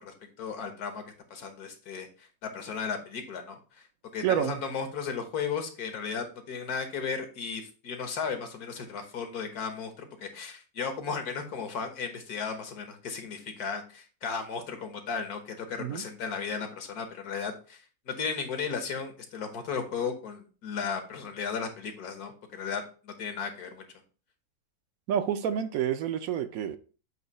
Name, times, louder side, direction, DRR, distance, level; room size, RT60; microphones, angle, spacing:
voice 1, 0.0-1.0 1.3-3.9 4.1-17.8 18.1-23.8, left 6 dB, 85° left, 1.7 m, -35 dB
voice 2, 4.2-4.6 15.8-16.0 25.1-26.8, right 9 dB, 70° right, 1.1 m, -28 dB
7.9 x 2.8 x 5.4 m
omnidirectional pair, 1.6 m